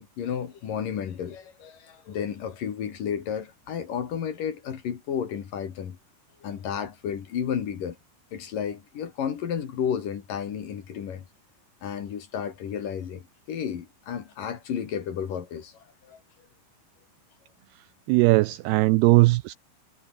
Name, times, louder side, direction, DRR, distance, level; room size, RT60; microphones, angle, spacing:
voice 1, 0.0-6.0 6.4-8.0 8.3-11.2 11.8-16.2, left 8 dB, 55° left, 3.6 m, -32 dB
voice 2, 18.1-19.5, right 21 dB, 85° right, 2.3 m, -19 dB
omnidirectional pair, 5.2 m